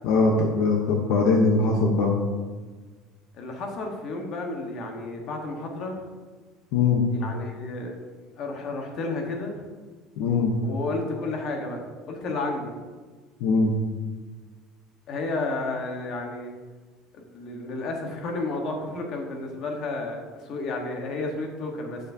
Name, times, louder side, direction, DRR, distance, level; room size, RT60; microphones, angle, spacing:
voice 1, 0.0-2.2 6.7-7.0 10.2-10.5 13.4-13.7, left 3 dB, 70° left, 1 dB, 0.9 m, -21 dB
voice 2, 3.3-6.0 7.1-7.9 8.4-9.6 10.6-12.7 15.1-16.5 17.1-22.0, left 2 dB, 45° left, 2 dB, 1.3 m, -32 dB
8.2 x 6.5 x 2.7 m, 1.4 s
cardioid pair, 155°, 0 cm